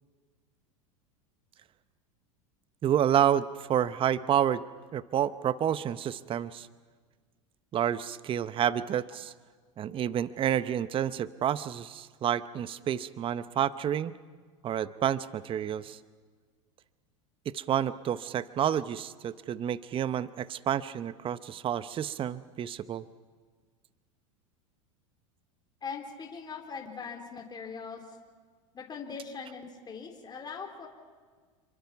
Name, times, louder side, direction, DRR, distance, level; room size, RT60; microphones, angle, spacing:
voice 1, 2.8-4.6 4.9-6.7 7.7-9.3 9.8-14.2 14.6-16.0 17.5-23.0, right 10 dB, 30° right, 15 dB, 0.8 m, -29 dB
voice 2, 25.8-28.2 28.7-30.9, left 5 dB, 25° left, 2 dB, 3.7 m, -41 dB
28.0 x 24.0 x 5.9 m, 1.5 s
hypercardioid pair, 95°, 17 cm